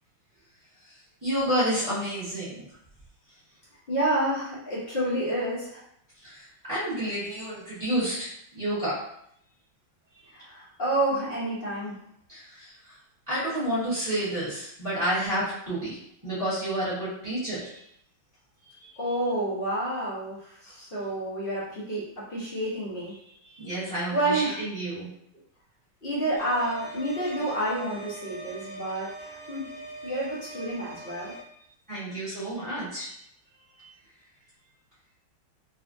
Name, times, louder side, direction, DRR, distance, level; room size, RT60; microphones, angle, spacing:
voice 1, 1.2-2.7 6.2-9.0 12.3-13.0 13.3-17.8 18.6-19.0 23.2-25.1 31.9-33.1 33.8-33.9, right 1 dB, 15° right, -12 dB, 0.7 m, -30 dB
voice 2, 3.9-5.8 10.3-12.0 19.0-23.1 24.1-24.6 26.0-29.7 30.0-31.3, right 1 dB, 55° left, -8 dB, 0.6 m, -29 dB
sound 1, 26.4-31.4, right 1 dB, 70° left, 1.6 m, -42 dB
3.8 x 2.2 x 2.6 m, 0.72 s
omnidirectional pair, 2.2 m